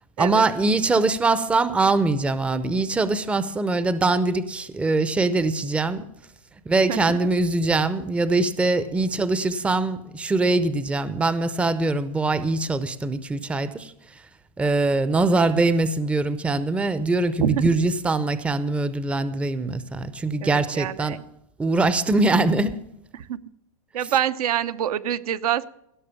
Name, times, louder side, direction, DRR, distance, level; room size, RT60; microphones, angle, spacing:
voice 1, 0.2-6.1 6.7-13.9 14.6-21.2 21.6-22.8, right 3 dB, 5° right, 14 dB, 0.6 m, -22 dB
voice 2, 20.4-21.2 23.1-23.4 23.9-25.7, right 10 dB, 75° right, 11 dB, 0.8 m, -26 dB
16.5 x 6.5 x 7.0 m, 0.80 s
hypercardioid pair, 140°, 19 cm